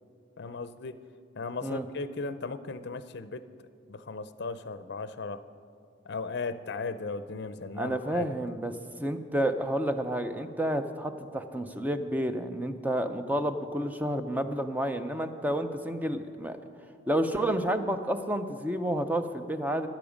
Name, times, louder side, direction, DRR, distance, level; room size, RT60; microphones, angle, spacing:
voice 1, 0.4-1.0 1.4-5.4 6.0-8.3, left 4 dB, 65° left, 13 dB, 0.5 m, -37 dB
voice 2, 7.8-8.7 9.0-16.6 17.1-19.9, right 1 dB, 10° right, 8 dB, 0.6 m, -30 dB
14.0 x 10.5 x 5.1 m, 2.3 s
head